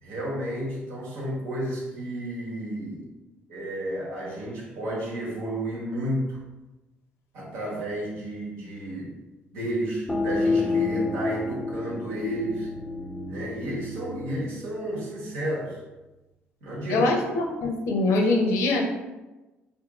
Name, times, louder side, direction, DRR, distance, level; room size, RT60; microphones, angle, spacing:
voice 1, 0.0-3.1 3.5-6.4 7.3-9.2 9.5-12.7 13.3-15.8 16.6-17.1, right 1 dB, 85° right, -4 dB, 1.1 m, -32 dB
sound 1, 10.1-15.5, left 3 dB, 5° left, 0.4 m, -29 dB
voice 2, 16.9-18.8, left 2 dB, 80° left, 2 dB, 0.6 m, -23 dB
2.6 x 2.5 x 3.5 m, 1.1 s
cardioid pair, 80°, 5 cm